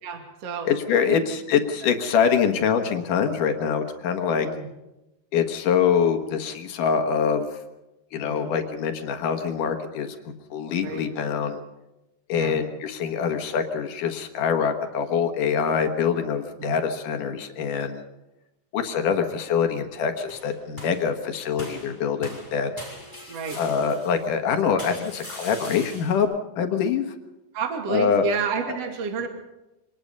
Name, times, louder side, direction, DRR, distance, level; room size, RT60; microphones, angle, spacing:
voice 1, 0.0-0.7 1.0-1.2 1.8-2.0 4.3-4.7 8.2-8.5 10.8-11.1 12.3-12.6 16.6-16.8 23.3-23.6 27.5-29.3, right 5 dB, 45° right, 4 dB, 3.1 m, -30 dB
voice 2, 0.7-4.5 5.3-7.5 8.1-10.2 10.5-11.6 12.3-18.0 18.7-22.7 23.6-27.1 27.9-28.2 28.7-28.8, left 7 dB, 60° left, 6 dB, 2.7 m, -24 dB
sound 1, 20.3-21.1 21.6-24.3 24.8-26.2, equal, 5° right, 6.3 m, -41 dB
25.5 x 19.5 x 5.5 m, 0.97 s
omnidirectional pair, 4.7 m